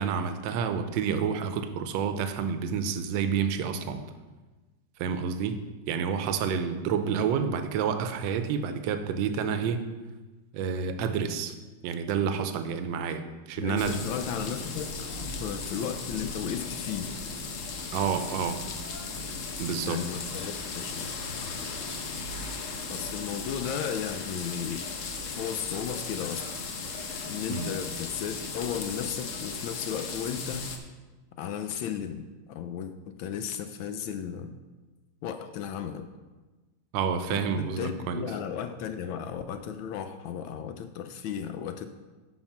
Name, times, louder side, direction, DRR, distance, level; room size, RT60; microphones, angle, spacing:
voice 1, 0.0-4.0 5.0-9.9 10.5-11.6 11.8-14.0 17.9-18.6 19.6-20.0 27.5-27.7 36.9-38.3, right 6 dB, 75° right, 9 dB, 1.3 m, -29 dB
voice 2, 13.6-15.1 15.4-17.1 19.8-21.2 22.9-24.9 25.3-26.5 27.2-30.7 31.4-34.5 35.2-36.1 37.3-41.9, left 8 dB, 75° left, 9 dB, 1.3 m, -35 dB
sound 1, 13.8-30.8, left 4 dB, 60° left, 0.8 m, -36 dB
9.7 x 4.3 x 5.8 m, 1.2 s
omnidirectional pair, 2.3 m